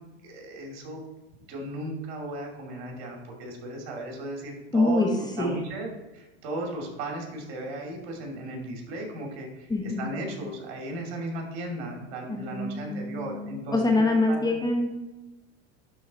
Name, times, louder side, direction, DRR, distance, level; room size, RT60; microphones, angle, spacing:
voice 1, 0.2-1.0 1.5-14.6, right 1 dB, 60° right, 1 dB, 2.7 m, -36 dB
voice 2, 4.7-5.1 5.4-5.6 9.7-10.1 12.3-15.0, left 2 dB, 15° left, 2 dB, 0.9 m, -25 dB
11.5 x 3.9 x 4.3 m, 1.1 s
supercardioid pair, 125°, 32 cm